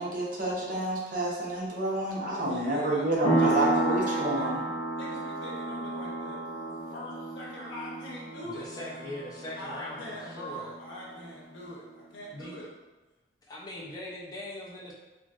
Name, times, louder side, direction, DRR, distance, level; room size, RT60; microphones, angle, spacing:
voice 1, 0.0-4.6, right 1 dB, 45° right, -4 dB, 0.6 m, -29 dB
voice 2, 2.4-3.0 3.3-4.7 4.9-6.4 6.9-9.0 9.5-12.6, left 1 dB, 85° left, -5 dB, 0.8 m, -42 dB
sound 1, 3.2-11.6, right 2 dB, 50° left, 1.2 m, -32 dB
voice 3, 8.4-10.7 12.3-12.6 13.5-14.9, left 1 dB, 20° left, -4 dB, 0.4 m, -41 dB
2.9 x 2.5 x 2.3 m, 1.1 s
head